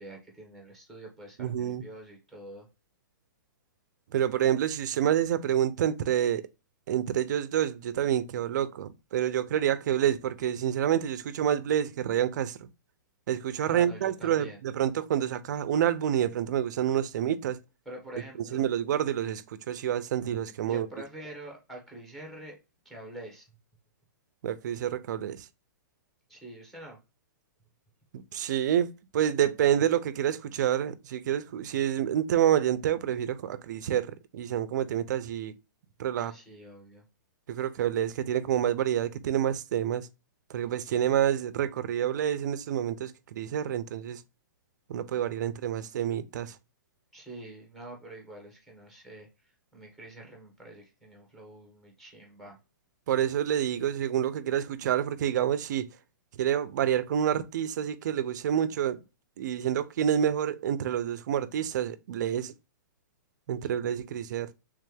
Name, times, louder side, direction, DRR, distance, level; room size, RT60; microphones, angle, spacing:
voice 1, 0.0-2.7 13.7-14.6 17.8-18.6 20.7-22.6 22.8-23.5 26.3-27.0 36.1-37.0 47.1-49.3 49.7-52.6, right 1 dB, ahead, 1.3 m, -45 dB
voice 2, 1.4-1.8 4.1-6.4 6.9-12.6 13.3-17.6 18.5-20.9 24.4-25.5 28.3-28.9 29.1-35.5 36.0-36.3 37.5-40.1 40.5-44.2 44.9-46.6 53.1-55.9 56.3-59.0 59.4-62.5 63.5-64.5, right 10 dB, 60° right, 0.5 m, -28 dB
3.4 x 3.3 x 3.2 m
hypercardioid pair, 150°, 11 cm